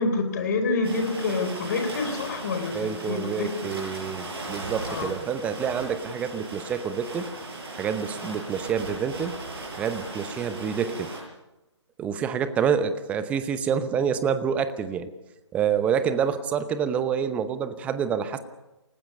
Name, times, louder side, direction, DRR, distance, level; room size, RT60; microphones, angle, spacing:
voice 1, 0.0-3.5 4.9-5.1, left 3 dB, 35° left, 6 dB, 4.5 m, -27 dB
sound 1, 0.8-11.2, right 2 dB, 50° right, 8.0 m, -37 dB
voice 2, 2.7-7.3 7.7-9.4 9.8-11.1 12.0-15.1 15.5-18.4, right 7 dB, 10° right, 12 dB, 0.8 m, -27 dB
28.5 x 19.0 x 5.3 m, 0.98 s
figure-of-eight pair, 145°, 16 cm